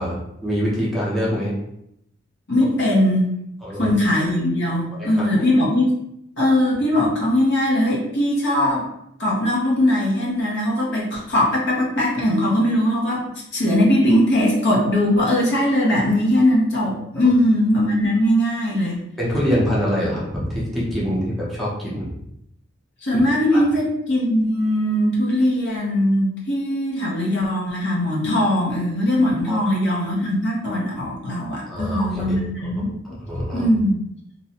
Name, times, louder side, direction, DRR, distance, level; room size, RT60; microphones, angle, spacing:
voice 1, 0.0-1.5 3.6-3.9 4.9-5.5 19.2-22.1 23.5-23.6 29.5-29.6 31.7-32.7 33.0-33.7, equal, ahead, -8 dB, 0.6 m, -25 dB
voice 2, 2.5-3.3 3.7-5.9 6.4-8.9 9.2-13.2 13.5-19.0 23.0-32.9 33.5-34.0, left 1 dB, 60° left, -4 dB, 0.7 m, -20 dB
2.5 x 2.1 x 2.8 m, 0.78 s
head